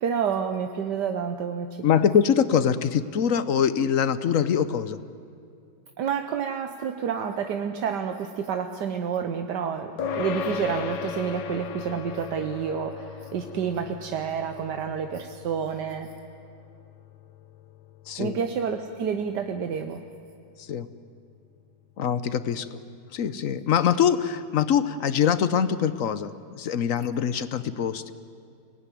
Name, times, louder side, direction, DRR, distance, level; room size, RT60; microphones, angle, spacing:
voice 1, 0.0-2.1 6.0-16.2 18.2-20.0, right 7 dB, 80° right, 6 dB, 1.6 m, -29 dB
voice 2, 1.8-5.0 18.1-18.4 20.7-20.9 22.0-22.7 23.1-28.1, left 8 dB, 55° left, 14 dB, 1.1 m, -23 dB
sound 1, 10.0-19.7, left 6 dB, 85° left, 1.7 m, -37 dB
25.0 x 18.5 x 9.9 m, 2.4 s
omnidirectional pair, 1.8 m